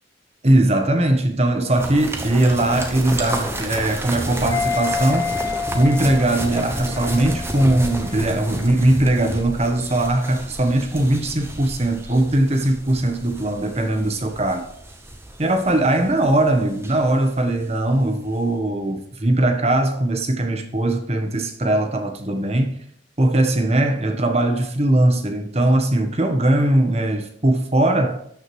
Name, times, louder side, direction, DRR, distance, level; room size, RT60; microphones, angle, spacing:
voice 1, 0.4-5.3 5.7-14.7 15.4-22.8 23.2-28.2, right 1 dB, 35° right, 1.3 m, -20 dB
sound 1, 1.7-17.9 18.2-18.3, right 1 dB, 15° right, 1.2 m, -31 dB
sound 2, 4.5-8.4 8.7-8.8, left 6 dB, 20° left, 0.8 m, -29 dB
12.5 x 6.2 x 3.3 m
head